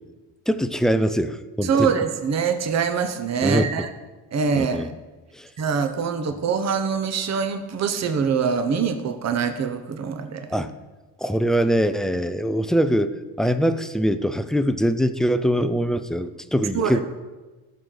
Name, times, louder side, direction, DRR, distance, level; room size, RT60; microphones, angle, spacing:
voice 1, 0.5-1.9 3.4-3.7 4.5-4.9 5.4-5.5 10.5-10.7 11.2-17.0, equal, ahead, 10 dB, 0.4 m, -23 dB
voice 2, 1.6-3.9 4.3-4.9 5.6-10.5 16.7-17.0, right 6 dB, 40° right, 8 dB, 1.0 m, -24 dB
17.5 x 6.6 x 3.9 m, 1.2 s
cardioid pair, 130°, 40 cm